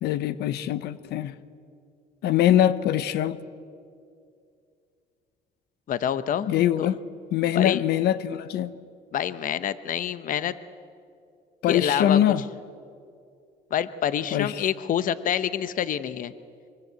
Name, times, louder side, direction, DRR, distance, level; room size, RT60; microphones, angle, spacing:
voice 1, 0.0-1.3 2.2-3.4 6.5-7.0 7.3-8.7 11.6-12.4 14.3-14.7, left 11 dB, 75° left, 14 dB, 1.0 m, -23 dB
voice 2, 5.9-6.9 7.5-7.8 9.1-10.5 11.7-12.2 13.7-16.3, left 9 dB, 55° left, 14 dB, 0.9 m, -27 dB
24.5 x 24.0 x 8.1 m, 2.4 s
cardioid pair, 110°, 17 cm